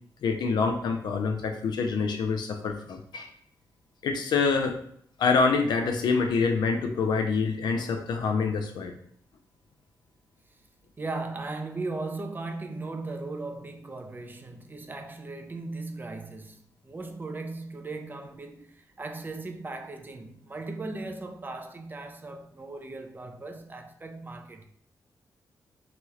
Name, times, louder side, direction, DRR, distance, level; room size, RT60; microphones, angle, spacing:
voice 1, 0.2-3.3 4.0-4.8 5.2-8.9, left 4 dB, 85° left, 0.5 m, -26 dB
voice 2, 11.0-24.6, right 3 dB, 25° right, 0.4 m, -37 dB
2.9 x 2.3 x 3.1 m
cardioid pair, 85°, 7 cm